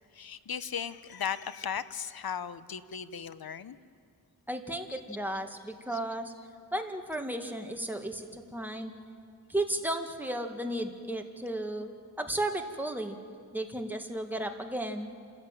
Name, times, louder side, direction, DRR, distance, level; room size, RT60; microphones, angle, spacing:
voice 1, 0.1-3.8 4.9-5.0 5.9-6.0, left 7 dB, 65° left, 14 dB, 0.9 m, -37 dB
voice 2, 4.5-6.3 6.7-8.9 9.5-11.9 12.2-13.2 13.5-15.1, right 1 dB, 5° right, 4 dB, 1.9 m, -34 dB
28.5 x 14.0 x 9.1 m, 2.2 s
wide cardioid pair, 80°, 39 cm